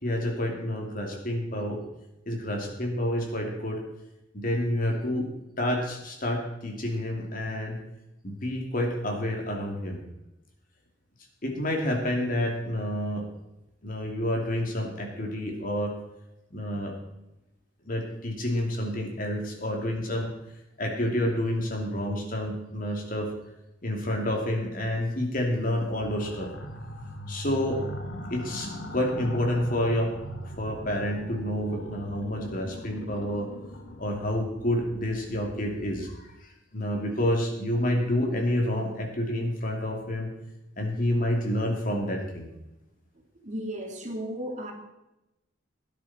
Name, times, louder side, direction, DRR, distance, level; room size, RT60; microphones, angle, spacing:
voice 1, 0.0-1.8 2.3-3.8 4.3-5.3 5.6-7.8 8.2-10.0 11.4-13.2 13.8-15.9 16.5-16.9 17.8-20.3 20.8-23.3 23.8-26.5 27.3-27.8 28.3-30.1 30.6-33.5 34.0-36.2 36.7-40.3 40.8-42.5, left 1 dB, 50° left, 1 dB, 2.8 m, -29 dB
sound 1, 25.9-36.4, equal, 70° left, 1.7 m, -40 dB
voice 2, 43.4-44.7, equal, 40° right, 1 dB, 2.5 m, -34 dB
17.5 x 10.0 x 4.3 m, 0.92 s
head